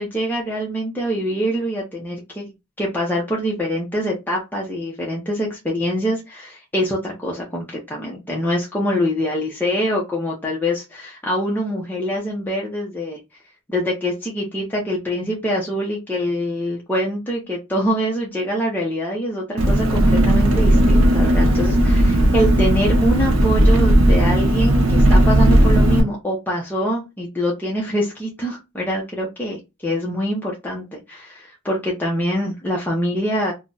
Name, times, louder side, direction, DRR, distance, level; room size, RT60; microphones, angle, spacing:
voice 1, 0.0-2.5 2.8-13.2 13.7-33.5, equal, 10° left, -3 dB, 0.6 m, -24 dB
Engine, 19.6-26.0, right 1 dB, 75° right, 0.7 m, -15 dB
2.7 x 2.1 x 3.7 m, 0.23 s
head